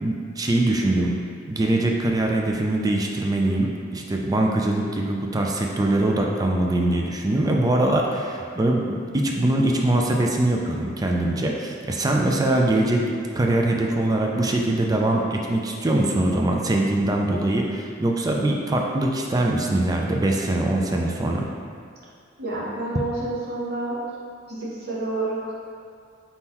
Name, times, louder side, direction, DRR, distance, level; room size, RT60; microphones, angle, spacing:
voice 1, 0.0-1.2 1.5-13.0 13.3-21.5, right 1 dB, 20° right, 0 dB, 0.4 m, -22 dB
voice 2, 22.4-24.0 24.5-25.5, right 2 dB, 55° right, -6 dB, 0.9 m, -29 dB
4.1 x 3.7 x 2.9 m, 2.3 s
head